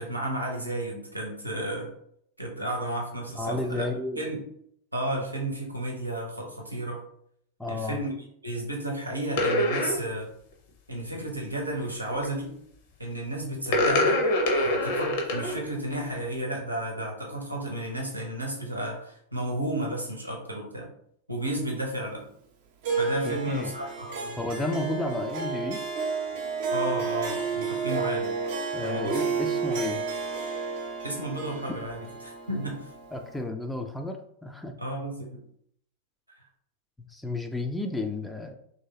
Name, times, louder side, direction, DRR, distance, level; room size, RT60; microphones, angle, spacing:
voice 1, 0.0-1.9 2.4-3.9 4.1-4.4 4.9-7.0 7.7-8.1 8.4-10.3 10.9-12.5 13.0-14.2 14.5-20.9 21.3-22.2 23.0-24.4 26.7-28.4 28.8-29.2 31.0-32.9 34.8-35.4, right 1 dB, 85° right, 0 dB, 0.8 m, -32 dB
voice 2, 3.4-4.2 7.6-8.0 23.2-23.7 24.4-25.8 28.7-30.0 33.1-34.7 37.0-38.6, left 2 dB, 5° left, 5 dB, 0.4 m, -32 dB
sound 1, 9.3-10.0 11.9-12.2 13.7-15.6 15.9-16.2, left 1 dB, 50° left, 0.6 m, -24 dB
Harp, 22.8-33.4, right 5 dB, 50° right, 0.6 m, -31 dB
3.0 x 2.7 x 2.7 m, 0.70 s
figure-of-eight pair, 90°, 0 cm